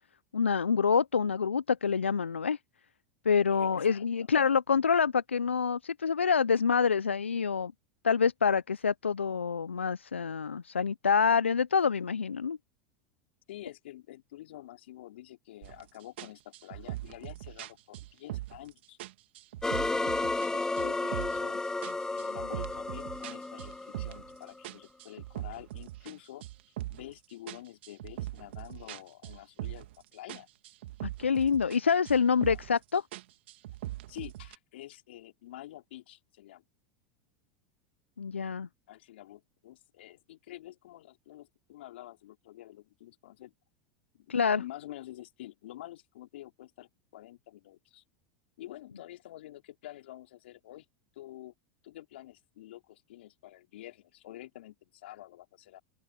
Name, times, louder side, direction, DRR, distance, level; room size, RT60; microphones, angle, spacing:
voice 1, 0.3-2.6 3.2-7.7 8.0-12.6 31.0-33.0 38.2-38.7 44.3-44.6, left 6 dB, 90° left, 0.6 m, -27 dB
voice 2, 3.5-4.3 13.5-19.0 19.9-21.6 22.1-26.4 26.9-30.5 32.5-32.6 34.1-36.6 38.9-43.5 44.1-48.0 48.6-50.9 51.2-51.5 51.8-55.8, left 14 dB, 70° left, 3.7 m, -48 dB
sound 1, 15.6-15.8 16.2-18.7 19.0-20.5 20.8-21.5 21.8-24.3 24.6-27.1 27.5-30.0 30.3-31.8 32.1-32.8 33.1-34.6, right 15 dB, 70° right, 2.2 m, -41 dB
sound 2, 19.6-24.6, left 2 dB, 10° left, 0.5 m, -33 dB
open air
hypercardioid pair, 85°, 6 cm